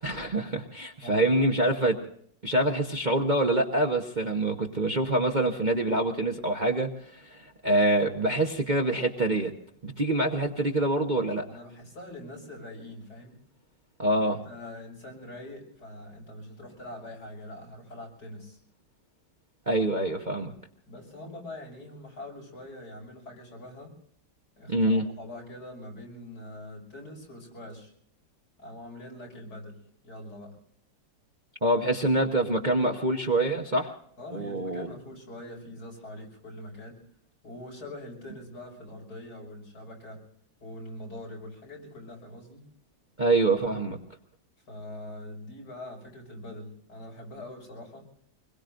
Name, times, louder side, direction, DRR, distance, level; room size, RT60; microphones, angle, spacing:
voice 1, 0.0-2.0 2.4-9.5 9.8-11.5 14.0-14.4 19.7-20.5 24.7-25.1 31.6-33.9 34.3-34.9 43.2-44.0, right 2 dB, 30° right, 2 dB, 1.0 m, -25 dB
voice 2, 1.0-1.5 11.5-13.4 14.2-18.6 20.9-24.0 24.6-27.9 28.6-30.6 34.2-37.0 37.4-40.3 40.6-42.7 44.7-48.1, left 1 dB, 65° left, 0 dB, 6.5 m, -43 dB
26.0 x 21.5 x 2.6 m, 0.65 s
omnidirectional pair, 1.9 m